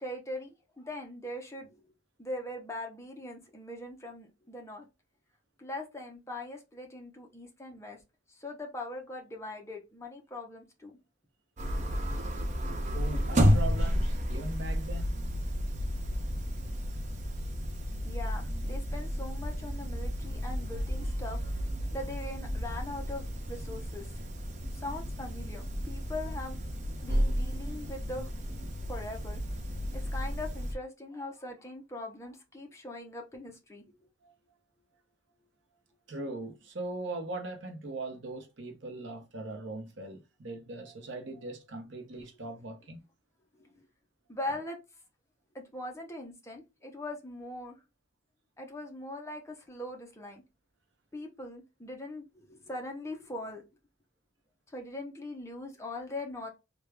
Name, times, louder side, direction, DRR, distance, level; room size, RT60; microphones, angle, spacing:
voice 1, 0.0-1.8 2.2-4.9 5.6-8.0 8.3-11.0 18.0-21.5 21.9-24.1 24.7-26.6 27.0-28.3 28.9-29.4 29.9-33.9 43.5-43.8 44.3-44.8 45.5-47.8 48.6-50.4 51.1-53.6 54.7-56.5, left 1 dB, 15° left, 0.8 m, -41 dB
sound 1, 11.6-30.7, equal, 40° right, 0.7 m, -32 dB
voice 2, 12.9-15.2 34.2-34.3 36.1-43.0, right 2 dB, 65° right, 0.9 m, -40 dB
3.4 x 2.4 x 3.3 m
head